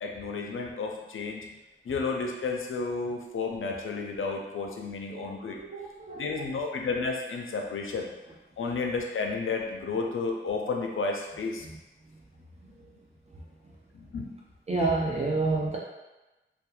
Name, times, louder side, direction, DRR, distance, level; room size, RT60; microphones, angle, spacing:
voice 1, 0.0-1.5 1.8-5.6 6.2-8.1 8.6-11.7 12.7-12.8 13.9-14.3, left 4 dB, 75° left, 2 dB, 0.4 m, -32 dB
voice 2, 5.1-6.6 11.7-11.8 14.7-15.8, right 3 dB, 30° right, -4 dB, 0.5 m, -30 dB
2.9 x 2.3 x 2.3 m, 1.1 s
wide cardioid pair, 75°, 21 cm